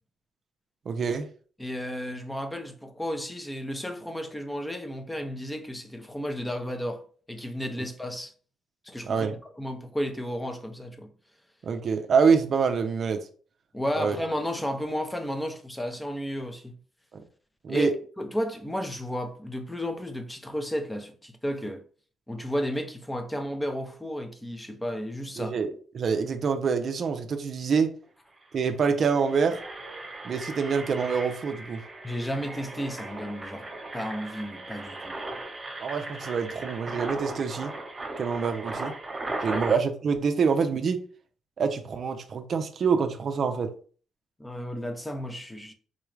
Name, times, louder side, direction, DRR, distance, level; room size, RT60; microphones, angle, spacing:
voice 1, 0.9-1.3 9.1-9.3 11.6-13.3 14.0-14.2 17.6-17.9 25.4-25.7 25.9-27.9 28.5-29.6 30.2-31.8 35.8-37.7 38.2-38.9 39.4-41.0 41.6-43.7, right 5 dB, 50° right, 0.5 m, -26 dB
voice 2, 1.6-8.3 8.8-11.1 13.7-16.8 17.7-17.9 18.2-21.8 22.3-25.6 32.0-35.2 39.5-39.6 44.4-45.7, equal, 10° left, 0.6 m, -33 dB
Engine, 28.0-28.1 28.4-28.6 29.1-39.8, right 2 dB, 25° right, 1.1 m, -37 dB
3.8 x 2.3 x 3.2 m
cardioid pair, 90°, 0 cm